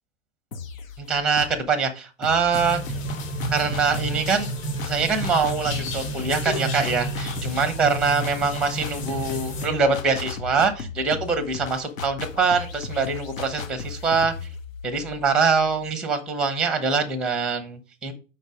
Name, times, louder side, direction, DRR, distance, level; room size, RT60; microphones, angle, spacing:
sound 1, 0.5-1.7 2.2-15.9, left 5 dB, 85° left, 0.9 m, -37 dB
voice 1, 1.0-2.8 3.5-4.5 4.8-14.3 14.8-18.1, right 5 dB, ahead, 8 dB, 0.6 m, -24 dB
sound 2, 2.5-9.7, right 1 dB, 50° left, 2.8 m, -31 dB
5.4 x 4.0 x 4.8 m, 0.33 s
hypercardioid pair, 120°, 39 cm